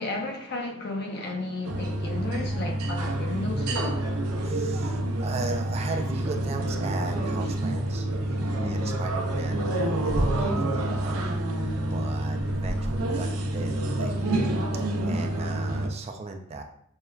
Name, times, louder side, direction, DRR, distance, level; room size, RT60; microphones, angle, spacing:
voice 1, 0.0-3.9 8.3-8.4, left 2 dB, 50° left, 0.7 m, -33 dB
sound 1, 1.6-15.9, right 1 dB, 85° right, 0.6 m, -28 dB
voice 2, 4.4-8.1 8.6-11.2 11.9-14.4 14.7-16.6, right 3 dB, 30° right, 0.3 m, -37 dB
6.3 x 2.2 x 2.3 m
head